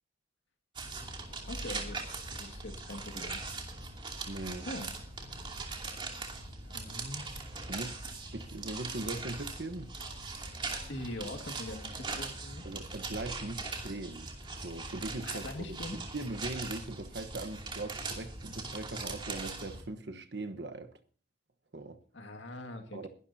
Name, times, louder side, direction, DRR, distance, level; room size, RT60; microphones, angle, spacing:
sound 1, 0.7-19.8, right 3 dB, 25° right, 2.7 m, -40 dB
voice 1, 1.5-3.4 4.7-4.9 6.6-7.3 10.9-12.6 15.2-16.0 22.1-23.1, left 1 dB, 80° left, 2.0 m, -42 dB
voice 2, 4.3-4.7 7.7-8.0 8.3-9.9 12.6-14.3 14.6-20.9 21.7-22.0 22.9-23.1, right 2 dB, 65° right, 1.2 m, -40 dB
22.0 x 12.0 x 2.8 m
head